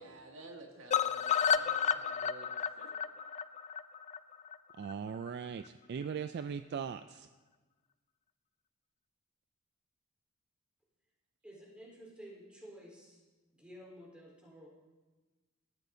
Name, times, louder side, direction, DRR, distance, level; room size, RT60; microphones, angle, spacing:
voice 1, 0.0-2.9, right 2 dB, 80° right, 1 dB, 1.6 m, -52 dB
sound 1, 0.9-4.9 5.3-5.4 5.7-5.8 6.0-6.1, left 8 dB, 35° left, 0.3 m, -32 dB
voice 2, 4.8-7.3, right 6 dB, 55° right, 10 dB, 0.3 m, -39 dB
voice 3, 11.4-13.2 13.5-14.7, equal, 5° right, -3 dB, 3.8 m, -52 dB
18.0 x 13.5 x 2.7 m, 1.3 s
head